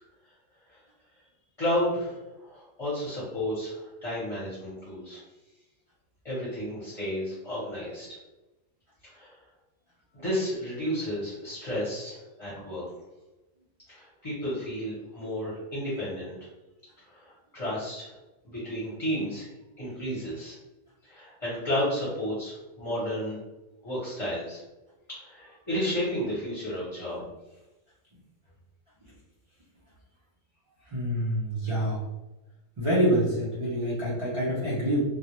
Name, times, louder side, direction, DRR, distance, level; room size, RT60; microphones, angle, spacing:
voice 1, 1.6-5.2 6.2-8.2 9.0-9.3 10.1-12.8 13.9-16.3 17.1-18.1 18.4-19.5 19.8-20.5 21.1-23.4 23.8-24.6 25.1-27.2, equal, 30° left, -9 dB, 0.8 m, -32 dB
voice 2, 30.9-32.0 32.8-35.0, equal, 55° right, -8 dB, 0.3 m, -26 dB
2.2 x 2.0 x 2.9 m, 1.0 s
omnidirectional pair, 1.3 m